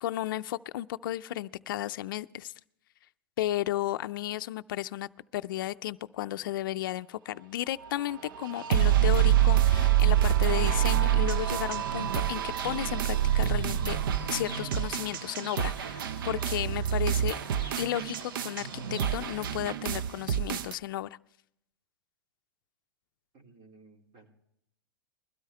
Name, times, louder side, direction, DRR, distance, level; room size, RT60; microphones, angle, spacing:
voice 1, 0.0-2.5 3.4-14.0 14.3-17.4 17.8-21.1, left 14 dB, 65° left, 12 dB, 0.4 m, -34 dB
sound 1, 7.8-20.7, right 11 dB, 70° right, 0.6 m, -27 dB
Fowl / Bird, 11.8-19.6, right 1 dB, 85° right, 4.9 m, -43 dB
voice 2, 23.3-24.3, right 3 dB, 40° right, 2 dB, 2.8 m, -56 dB
21.0 x 12.5 x 3.3 m, 0.75 s
hypercardioid pair, 120°, 12 cm